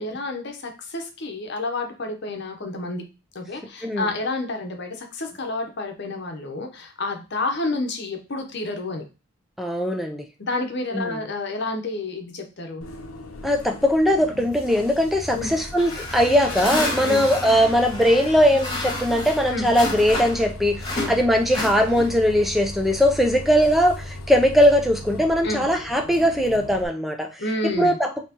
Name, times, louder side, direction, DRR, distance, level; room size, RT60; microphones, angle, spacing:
voice 1, 0.0-3.0 3.3-9.0 10.4-12.8 15.3-15.5 17.0-17.3 19.5-19.7 20.9-21.1 25.4-25.7 27.4-28.0, left 2 dB, 50° left, 4 dB, 0.8 m, -29 dB
voice 2, 9.6-10.3 10.9-11.2 13.4-27.3 27.8-28.2, equal, ahead, 4 dB, 0.5 m, -20 dB
Bus, 12.8-26.8, left 1 dB, 80° left, 0.8 m, -37 dB
sound 1, 15.8-20.5 20.8-22.3, left 1 dB, 20° left, 1.5 m, -30 dB
5.5 x 2.9 x 2.9 m, 0.30 s
head